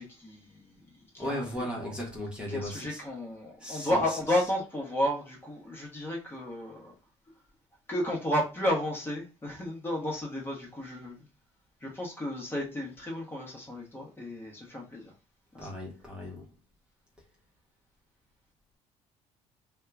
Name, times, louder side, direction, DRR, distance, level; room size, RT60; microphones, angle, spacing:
voice 1, 0.0-1.9 2.5-6.9 7.9-11.3 11.8-15.1 15.5-15.7, left 1 dB, 20° left, 1.2 m, -33 dB
voice 2, 1.2-3.0 3.6-4.2 15.6-16.5, left 1 dB, 10° right, 1.1 m, -36 dB
2.7 x 2.3 x 3.6 m
cardioid pair, 95°, 12 cm